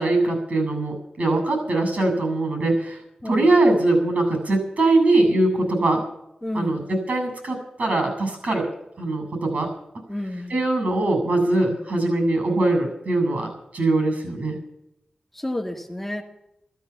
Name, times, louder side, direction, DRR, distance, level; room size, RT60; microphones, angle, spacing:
voice 1, 0.0-6.0 6.5-8.7 9.0-9.7 10.5-14.6, right 2 dB, 70° right, 5 dB, 7.5 m, -22 dB
voice 2, 6.4-6.9 10.1-10.6 15.3-16.2, left 1 dB, 10° left, 2 dB, 1.9 m, -30 dB
14.0 x 14.0 x 7.3 m, 0.81 s
wide cardioid pair, 75°, 3 cm